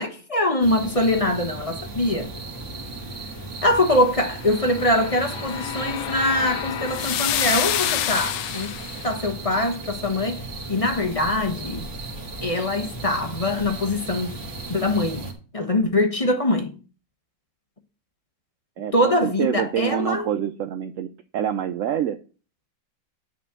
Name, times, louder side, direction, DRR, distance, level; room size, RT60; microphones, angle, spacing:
voice 1, 0.0-2.3 3.6-8.7 9.0-10.4 10.7-11.9 12.4-14.4 14.7-15.3 15.5-16.7 18.9-20.3, left 1 dB, 25° left, 1.0 m, -23 dB
sound 1, 0.6-15.3, right 2 dB, 40° right, 2.7 m, -36 dB
sound 2, 4.4-9.0, left 12 dB, 80° left, 1.3 m, -28 dB
voice 2, 18.8-22.2, right 9 dB, 65° right, 0.8 m, -26 dB
10.0 x 4.2 x 7.3 m
omnidirectional pair, 1.9 m